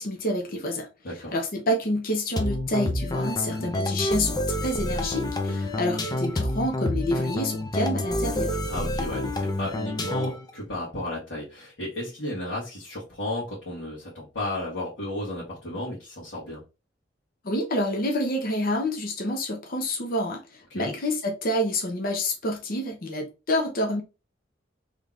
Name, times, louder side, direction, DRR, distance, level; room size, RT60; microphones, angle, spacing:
voice 1, 0.0-0.9 1.3-8.6 17.4-24.0, left 1 dB, 50° left, 0.8 m, -28 dB
sound 1, 2.4-10.5, left 1 dB, 20° left, 0.5 m, -28 dB
voice 2, 8.7-16.6 20.7-20.9, left 1 dB, 70° left, 1.6 m, -34 dB
3.7 x 3.3 x 2.5 m
head